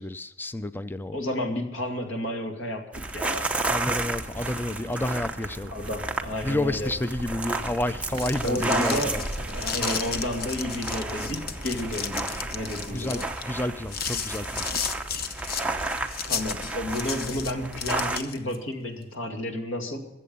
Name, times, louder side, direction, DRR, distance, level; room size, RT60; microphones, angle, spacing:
voice 1, 0.0-1.2 3.7-5.7 6.4-9.2 12.9-13.2 13.5-14.6, left 1 dB, 10° left, 13 dB, 0.4 m, -30 dB
voice 2, 1.1-3.5 5.7-6.9 8.4-13.3 16.2-20.0, left 1 dB, 70° left, 4 dB, 2.4 m, -31 dB
sound 1, 2.9-18.2, right 2 dB, 5° right, 0.8 m, -32 dB
sound 2, 3.5-14.2, right 1 dB, 30° right, 3.1 m, -42 dB
sound 3, 8.0-18.6, left 7 dB, 45° left, 0.9 m, -34 dB
22.5 x 7.7 x 5.4 m, 0.95 s
head